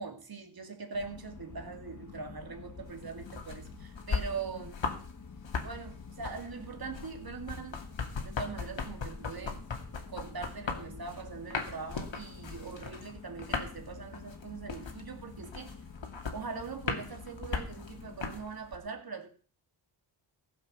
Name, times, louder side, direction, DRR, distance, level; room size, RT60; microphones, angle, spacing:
voice 1, 0.0-4.8 5.6-7.8 8.2-9.6 10.1-15.8 16.3-19.3, right 5 dB, 45° right, 5 dB, 2.6 m, -42 dB
sound 1, 0.9-18.2, left 5 dB, 35° left, 1.2 m, -49 dB
sound 2, 2.9-5.1 5.4-18.8, left 5 dB, 65° left, 2.5 m, -38 dB
15.5 x 7.5 x 6.8 m, 0.42 s
wide cardioid pair, 85°, 49 cm